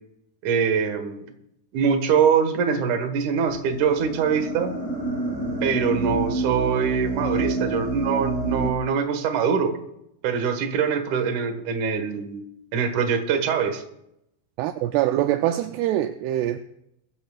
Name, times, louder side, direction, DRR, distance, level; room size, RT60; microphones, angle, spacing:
voice 1, 0.4-1.3 1.7-4.7 5.6-9.7 10.2-12.4 12.7-13.8, right 6 dB, 60° right, 2.3 m, -23 dB
sound 1, 3.5-8.7, right 2 dB, 15° right, 4.9 m, -28 dB
voice 2, 14.6-16.6, right 13 dB, 85° right, 2.4 m, -24 dB
21.5 x 14.0 x 2.4 m
omnidirectional pair, 5.3 m